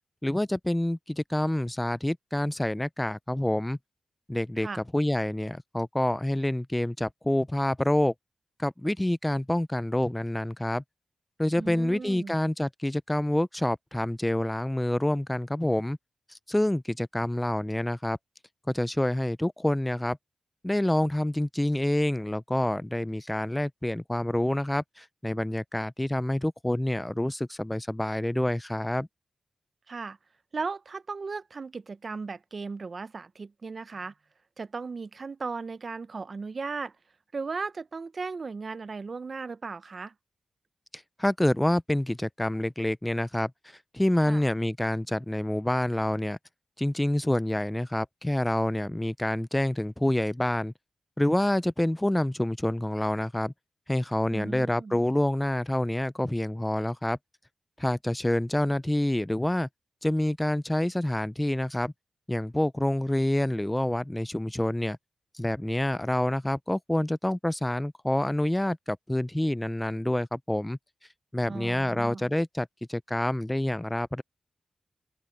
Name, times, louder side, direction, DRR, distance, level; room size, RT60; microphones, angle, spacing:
voice 1, 0.2-3.8 4.3-8.1 8.6-10.8 11.4-16.0 16.5-18.2 18.7-20.2 20.6-29.1 41.2-43.5 43.9-46.4 46.8-50.7 51.2-53.5 53.9-57.2 57.8-59.7 60.0-61.9 62.3-65.0 65.3-70.8 71.3-74.2, left 1 dB, 15° left, 0.6 m, -27 dB
voice 2, 11.6-12.4 29.9-30.2 30.5-34.1 34.6-36.9 37.3-40.1 44.3-44.4 54.3-55.0 71.5-72.3, right 4 dB, 55° right, 0.7 m, -36 dB
open air
cardioid pair, 55°, 0 cm